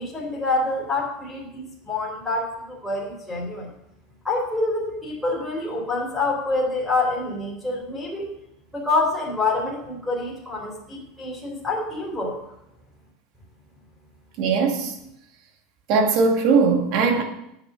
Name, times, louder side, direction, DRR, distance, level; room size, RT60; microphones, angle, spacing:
voice 1, 0.0-3.7 4.2-8.3 8.7-12.4, left 2 dB, ahead, -4 dB, 3.6 m, -26 dB
voice 2, 14.4-15.0 15.9-17.2, right 4 dB, 50° right, 3 dB, 2.3 m, -19 dB
11.0 x 8.1 x 6.3 m, 0.81 s
supercardioid pair, 150°, 0 cm